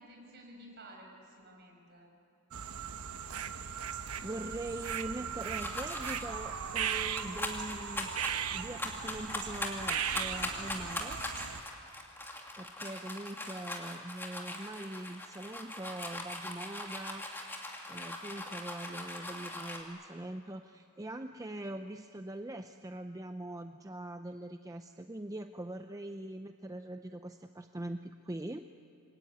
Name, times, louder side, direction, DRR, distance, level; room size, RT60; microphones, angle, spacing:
voice 1, 0.0-2.1, right 1 dB, 50° right, 0 dB, 6.2 m, -53 dB
sound 1, 2.5-11.6, right 8 dB, 90° right, 1.0 m, -38 dB
voice 2, 3.5-3.8 4.2-8.1 8.5-11.2 12.2-28.7, right 1 dB, 15° right, 7 dB, 0.5 m, -42 dB
sound 2, 5.6-6.3 6.9-19.8, left 1 dB, 10° left, 2.6 m, -40 dB
27.0 x 22.0 x 9.4 m, 2.8 s
head